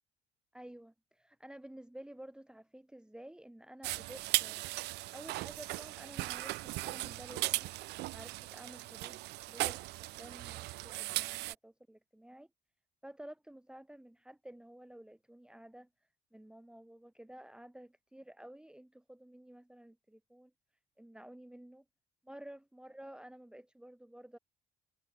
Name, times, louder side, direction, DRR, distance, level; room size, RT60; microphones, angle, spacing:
voice 1, 0.5-7.7 8.1-9.2 9.5-12.5 13.0-15.9 16.3-20.5 21.0-21.8 22.2-24.4, right 1 dB, 5° right, 1.3 m, -52 dB
sound 1, 3.8-11.5, right 21 dB, 85° right, 0.5 m, -37 dB
cardioid pair, 110°, 17 cm